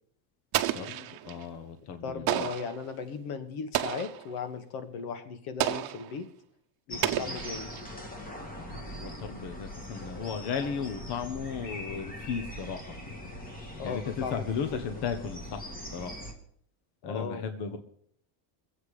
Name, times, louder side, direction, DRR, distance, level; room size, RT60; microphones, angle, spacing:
Explosion, 0.5-1.4 2.3-2.8 3.7-4.3 5.6-6.1 7.0-7.9, right 13 dB, 45° right, 0.9 m, -31 dB
voice 1, 0.7-2.5 7.2-7.4 8.5-12.9 13.8-15.6 15.9-16.1 17.0-17.8, left 6 dB, 50° left, 7 dB, 1.3 m, -35 dB
voice 2, 2.0-6.3 6.9-7.7 13.8-14.8 17.0-17.4 17.7-17.8, left 5 dB, 80° left, 9 dB, 1.8 m, -37 dB
sound 1, 6.9-16.3, left 1 dB, 15° left, 1.8 m, -41 dB
23.0 x 8.2 x 5.0 m, 0.65 s
cardioid pair, 165°, 50 cm